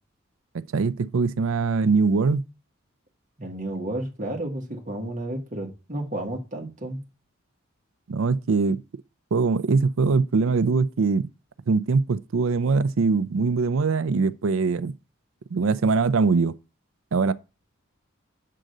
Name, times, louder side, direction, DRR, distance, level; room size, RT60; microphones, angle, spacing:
voice 1, 0.7-2.4 8.1-8.8 9.3-11.3 11.7-14.9 15.5-16.5 17.1-17.3, right 4 dB, 75° right, 0.5 m, -22 dB
voice 2, 3.4-7.0, right 1 dB, 40° right, 1.5 m, -32 dB
7.6 x 3.8 x 6.5 m
head